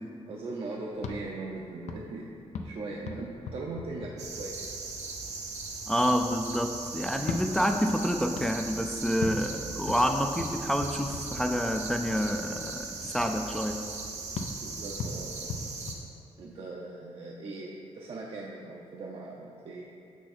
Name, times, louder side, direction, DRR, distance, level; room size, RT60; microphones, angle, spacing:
voice 1, 0.3-4.7 14.6-15.7 16.4-19.9, right 2 dB, 50° right, -2 dB, 0.6 m, -40 dB
sound 1, 0.9-4.8 7.1-12.0 14.3-16.8, left 4 dB, 80° left, 0.5 m, -40 dB
sound 2, 4.2-15.9, right 4 dB, 80° right, 0.9 m, -39 dB
voice 2, 5.9-13.8, equal, 5° left, 5 dB, 0.3 m, -28 dB
6.2 x 6.2 x 4.2 m, 2.6 s
wide cardioid pair, 140°, 11 cm